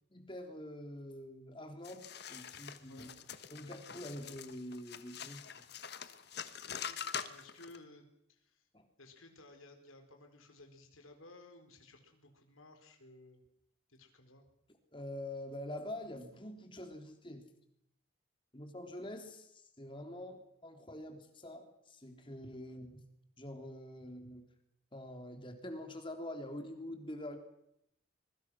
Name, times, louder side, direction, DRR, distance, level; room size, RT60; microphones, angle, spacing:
voice 1, 0.1-3.1 3.5-5.6 8.7-8.9 14.9-17.5 18.5-23.0 23.4-24.5 24.9-27.4, left 1 dB, 25° left, 6 dB, 3.3 m, -46 dB
sound 1, 1.8-7.8, left 7 dB, 50° left, 1.4 m, -45 dB
voice 2, 6.6-8.7 9.0-13.4 13.9-14.5, left 2 dB, 90° left, 5 dB, 4.2 m, -57 dB
25.5 x 23.5 x 6.2 m, 0.77 s
head